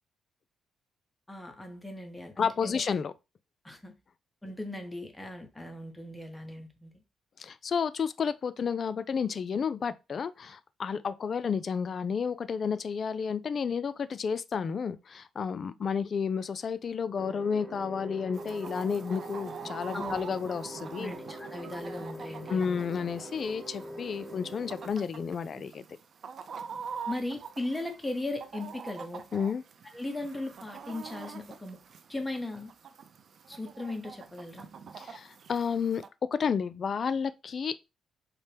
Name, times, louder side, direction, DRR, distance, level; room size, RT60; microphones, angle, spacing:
voice 1, 1.3-3.0 3.6-3.9 4.4-6.9 19.9-20.2 21.0-22.8 27.1-29.2 29.9-31.8 32.1-32.7 33.5-34.7, left 2 dB, 10° left, 0.9 m, -38 dB
voice 2, 2.4-3.1 7.4-21.1 22.5-25.8 29.3-29.6 35.0-36.0 36.4-37.7, left 6 dB, 45° left, 0.3 m, -31 dB
sound 1, 17.2-24.9, right 1 dB, 20° right, 0.9 m, -43 dB
Chicken rooster, 18.3-36.1, right 6 dB, 55° right, 0.4 m, -45 dB
4.2 x 2.1 x 3.3 m
cardioid pair, 90°, 0 cm